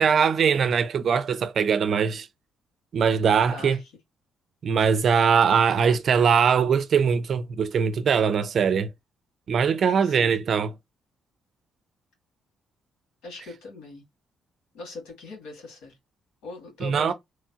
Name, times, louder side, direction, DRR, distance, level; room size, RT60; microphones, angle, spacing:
voice 1, 0.0-2.3 2.9-3.8 4.6-8.9 9.5-10.7 16.8-17.1, right 6 dB, 55° right, 0.5 m, -21 dB
voice 2, 3.5-3.8 4.8-4.9 10.0-10.4 13.2-14.0 14.7-16.0 16.4-17.1, left 3 dB, 85° left, 1.7 m, -40 dB
3.1 x 2.2 x 2.7 m
cardioid pair, 90°, 0 cm